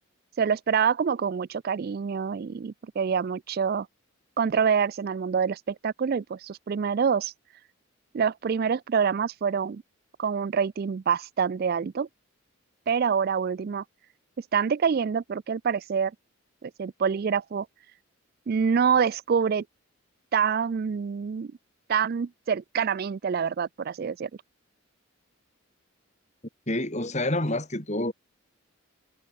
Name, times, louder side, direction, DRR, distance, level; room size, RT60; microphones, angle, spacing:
voice 1, 0.4-3.9 4.4-7.3 8.1-9.8 10.2-12.1 12.9-13.8 14.5-16.1 16.6-17.7 18.5-19.6 20.3-21.5 21.9-24.3, right 6 dB, 45° right, 0.3 m, -26 dB
voice 2, 26.7-28.1, left 1 dB, 30° left, 3.6 m, -28 dB
head